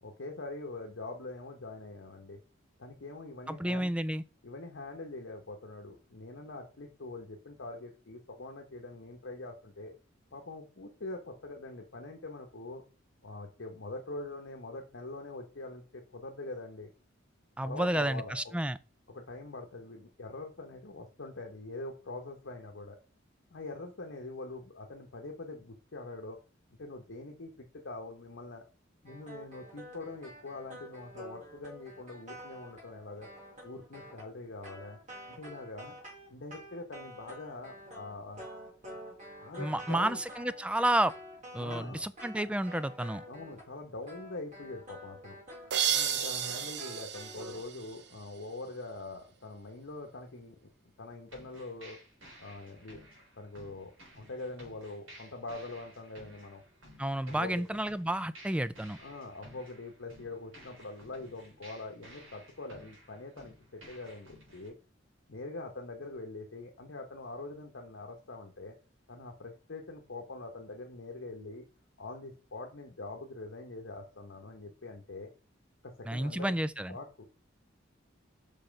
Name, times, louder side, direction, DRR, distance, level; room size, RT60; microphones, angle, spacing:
voice 1, 0.0-2.4 2.8-3.9 4.4-9.9 10.3-12.8 13.2-16.9 17.6-18.4 19.1-23.0 23.5-26.4 26.8-28.6 29.0-33.3 33.6-35.0 35.3-35.9 36.3-38.4 39.4-40.2 41.6-42.0 43.3-45.4 45.9-50.7 51.0-52.0 52.4-53.1 53.4-56.6 57.3-57.7 59.0-64.7 65.3-68.7 69.1-71.6 72.0-75.3 75.8-76.5 76.9-77.3, left 2 dB, 70° left, 1.0 m, -44 dB
voice 2, 3.5-4.2 17.6-18.8 39.6-41.1 41.5-43.2 57.0-59.0 76.1-77.0, right 1 dB, 5° right, 0.3 m, -31 dB
sound 1, 29.0-43.7 44.0-47.6, equal, 40° right, 3.5 m, -48 dB
sound 2, 45.7-48.4, right 8 dB, 60° right, 0.7 m, -33 dB
sound 3, 51.3-64.7, equal, 85° right, 3.7 m, -55 dB
5.6 x 5.4 x 5.2 m
head